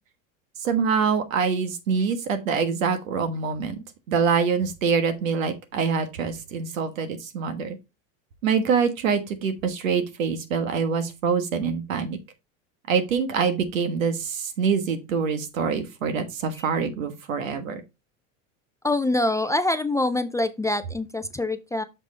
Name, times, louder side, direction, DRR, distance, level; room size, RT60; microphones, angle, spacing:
voice 1, 0.6-3.8 4.1-7.8 8.4-12.2 12.9-17.8, right 6 dB, 90° right, 1.4 m, -25 dB
voice 2, 18.8-21.8, left 2 dB, 10° left, 0.3 m, -25 dB
6.4 x 5.2 x 3.8 m
hypercardioid pair, 95°, 39 cm